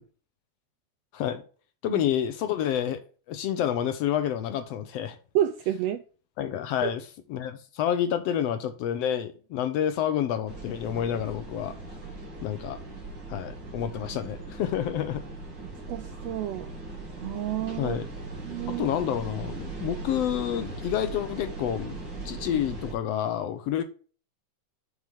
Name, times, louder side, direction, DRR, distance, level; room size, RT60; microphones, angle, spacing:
voice 1, 1.8-3.0 3.3-5.2 6.4-11.8 12.4-12.8 13.3-15.2 17.8-18.1 18.7-22.0 22.2-23.8, left 10 dB, 75° left, 1.5 m, -29 dB
voice 2, 5.3-6.0 6.8-6.9 14.2-14.3 15.9-16.7 17.2-18.0 18.4-18.9, right 12 dB, 85° right, 1.5 m, -29 dB
sound 1, 10.5-22.9, right 3 dB, 40° right, 2.4 m, -39 dB
7.2 x 6.2 x 3.5 m
omnidirectional pair, 3.5 m